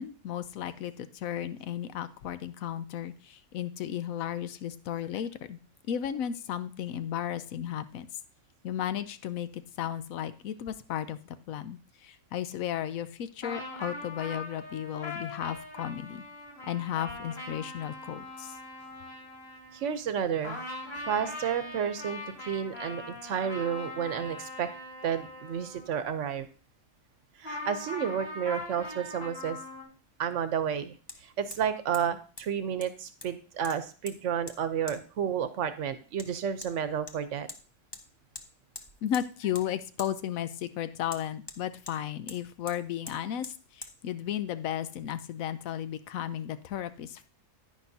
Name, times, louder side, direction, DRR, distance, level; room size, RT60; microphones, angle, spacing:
voice 1, 0.0-5.6 5.9-8.1 8.6-16.2 16.6-18.6 39.0-47.3, left 10 dB, 80° left, 13 dB, 1.1 m, -34 dB
sound 1, 13.4-20.2 20.4-26.4 27.4-29.8, left 2 dB, 50° left, 4.0 m, -41 dB
voice 2, 19.7-20.6 21.1-24.7 25.0-26.5 27.4-29.6 30.2-30.9 31.2-37.5, right 8 dB, 65° right, 11 dB, 1.1 m, -31 dB
Hammer, 31.1-31.2 31.5-31.7 31.9-32.1 32.4-32.5 32.8-33.4 33.6-34.2 34.5-34.6 34.9-35.0 36.2-36.3 36.6-36.7 37.1-37.6 37.9-38.0 38.3-38.5 38.7-39.3 39.5-39.7 40.0-40.1 41.1-42.0 42.3-42.4 42.7-42.8 43.1-43.2 43.4-43.6 43.8-43.9, left 3 dB, 25° left, 0.6 m, -44 dB
10.0 x 9.9 x 2.7 m, 0.37 s
omnidirectional pair, 1.4 m